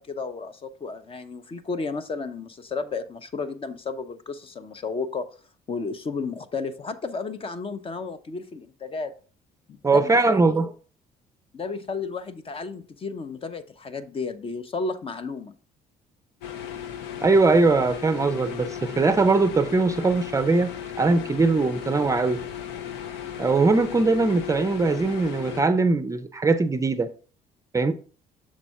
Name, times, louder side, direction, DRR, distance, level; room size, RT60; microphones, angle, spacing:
voice 1, 0.0-5.3 5.7-9.1 9.7-10.6 11.5-15.5, left 4 dB, 35° left, 0.7 m, -33 dB
voice 2, 9.8-10.7 17.2-20.7 21.0-22.4 23.4-27.1 27.7-27.9, right 3 dB, 20° right, 0.5 m, -21 dB
sound 1, 16.4-25.6, left 9 dB, 90° left, 0.8 m, -36 dB
6.4 x 4.0 x 4.6 m
cardioid pair, 110°, 17 cm